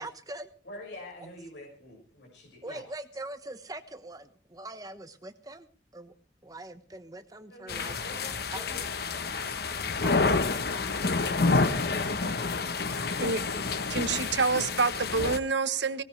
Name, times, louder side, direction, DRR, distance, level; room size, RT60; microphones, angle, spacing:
voice 1, 0.0-0.5 1.2-1.3 2.6-6.1 6.4-8.0 8.5-8.7 10.0-10.7, right 2 dB, 20° right, 9 dB, 1.2 m, -42 dB
voice 2, 0.6-2.8 7.5-9.7 11.1-13.4, left 2 dB, 85° left, -1 dB, 5.8 m, -46 dB
sound 1, 7.7-15.4, left 3 dB, 60° left, 1.0 m, -29 dB
voice 3, 13.9-16.0, right 4 dB, 80° right, 12 dB, 1.1 m, -27 dB
19.0 x 18.5 x 3.3 m, 0.42 s
head